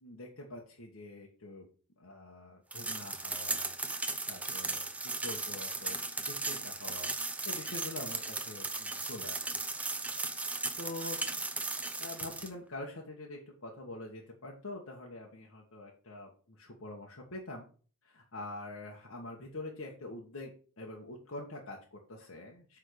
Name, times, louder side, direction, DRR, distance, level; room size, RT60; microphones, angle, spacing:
voice 1, 0.0-1.6 2.0-3.7 4.3-6.0 6.3-9.7 10.8-11.2 11.5-17.6 18.0-20.5 20.8-22.8, left 2 dB, 70° left, -1 dB, 1.3 m, -45 dB
sound 1, 2.7-12.5, right 3 dB, 5° right, 0.5 m, -36 dB
8.3 x 3.7 x 6.5 m, 0.41 s
head